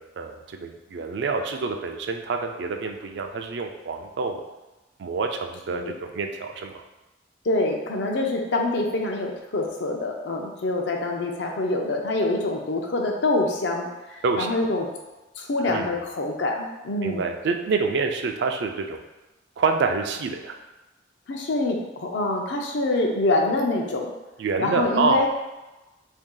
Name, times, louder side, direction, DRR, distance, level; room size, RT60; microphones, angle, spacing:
voice 1, 0.0-4.4 5.0-6.8 14.2-14.6 15.6-15.9 17.0-19.0 19.6-20.6 24.4-25.2, right 4 dB, 65° right, 4 dB, 0.4 m, -27 dB
voice 2, 7.4-14.9 15.4-17.3 21.3-24.1 24.6-25.3, left 2 dB, 75° left, 1 dB, 0.5 m, -25 dB
2.8 x 2.7 x 3.7 m, 1.1 s
head